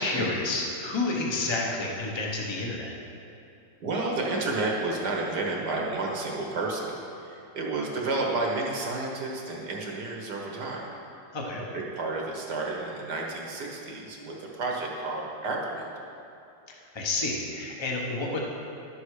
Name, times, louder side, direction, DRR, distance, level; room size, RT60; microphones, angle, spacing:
voice 1, 0.0-2.9 11.3-11.6 16.9-18.4, left 2 dB, 20° left, -2 dB, 0.9 m, -29 dB
voice 2, 3.8-10.9 11.7-15.8, right 2 dB, 65° right, -1 dB, 1.8 m, -31 dB
12.0 x 7.0 x 4.9 m, 2.6 s
omnidirectional pair, 2.0 m